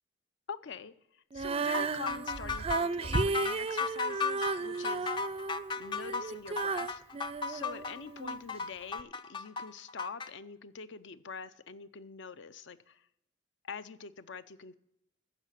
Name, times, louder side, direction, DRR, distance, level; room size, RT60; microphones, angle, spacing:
voice 1, 0.5-5.1 5.8-7.0 7.5-13.1 13.6-14.7, left 5 dB, 65° left, 0.6 m, -45 dB
Female singing, 1.3-8.4 9.0-9.1, right 4 dB, 30° right, 0.4 m, -34 dB
sound 1, 1.7-10.3, left 4 dB, 25° left, 0.4 m, -35 dB
14.0 x 5.0 x 8.1 m
head